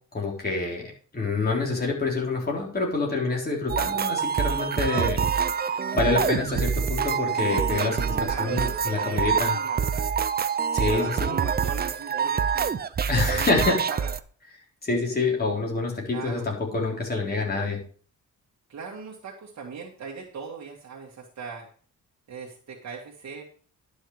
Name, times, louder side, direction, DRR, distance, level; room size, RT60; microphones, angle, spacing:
voice 1, 0.1-5.3 5.6-9.6 10.7-11.4 13.1-13.8 14.8-17.8, left 3 dB, 30° left, -1 dB, 3.7 m, -27 dB
sound 1, 3.7-14.2, right 7 dB, 30° right, 0.5 m, -26 dB
voice 2, 8.2-10.1 10.9-12.7 13.3-13.6 13.9-14.1 16.1-16.5 18.7-21.7 22.3-23.4, right 5 dB, 55° right, -2 dB, 2.2 m, -39 dB
11.5 x 6.3 x 4.8 m, 0.43 s
cardioid pair, 120°, 32 cm